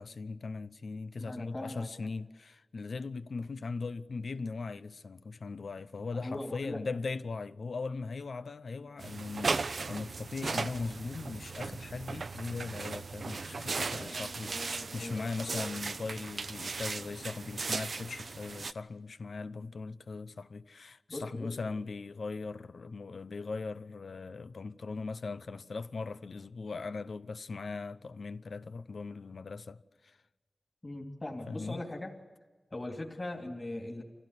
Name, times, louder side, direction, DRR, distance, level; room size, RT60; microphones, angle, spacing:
voice 1, 0.0-30.2 31.5-31.8, left 4 dB, 90° left, 0.7 m, -39 dB
voice 2, 1.2-1.9 6.1-6.8 14.0-15.7 21.1-21.7 30.8-32.1 32.7-34.0, left 1 dB, 30° left, 2.9 m, -40 dB
sound 1, 9.0-18.7, right 4 dB, 80° right, 0.7 m, -37 dB
26.0 x 16.5 x 8.3 m
wide cardioid pair, 80°, 0 cm